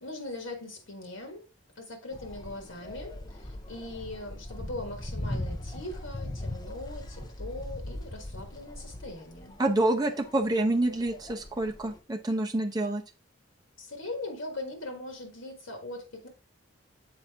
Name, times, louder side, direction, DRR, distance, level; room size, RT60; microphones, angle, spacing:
voice 1, 0.0-1.5 1.8-9.6 13.8-16.3, left 2 dB, 85° left, 1.4 m, -40 dB
sound 1, 2.1-12.0, left 1 dB, 20° left, 0.6 m, -39 dB
voice 2, 9.6-13.0, right 1 dB, 20° right, 0.8 m, -27 dB
7.3 x 4.2 x 3.5 m
head